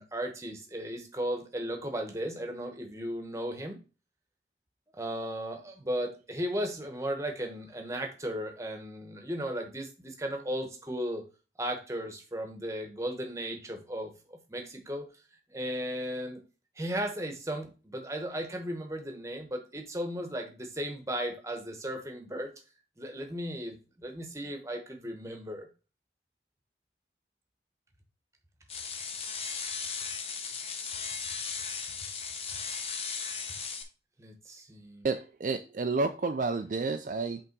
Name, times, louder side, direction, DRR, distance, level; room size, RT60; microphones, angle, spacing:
voice 1, 0.0-3.8 4.9-11.2 11.6-15.0 15.5-16.4 16.8-22.5 23.0-25.7 34.2-35.1, equal, 15° right, 4 dB, 1.0 m, -36 dB
sound 1, 28.7-33.8, left 5 dB, 35° left, 0.7 m, -36 dB
voice 2, 35.0-37.4, right 3 dB, 45° right, 7 dB, 0.4 m, -30 dB
5.5 x 3.5 x 5.2 m, 0.32 s
head